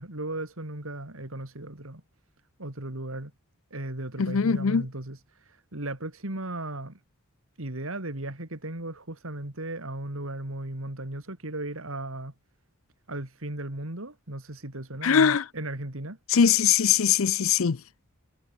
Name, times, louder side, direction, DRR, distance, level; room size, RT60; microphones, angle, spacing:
voice 1, 0.0-2.0 2.6-3.3 3.7-7.0 7.6-12.3 13.1-16.2, right 1 dB, 75° right, 3.1 m, -36 dB
voice 2, 4.2-4.8 15.0-15.5 16.3-17.8, left 7 dB, 75° left, 0.6 m, -21 dB
head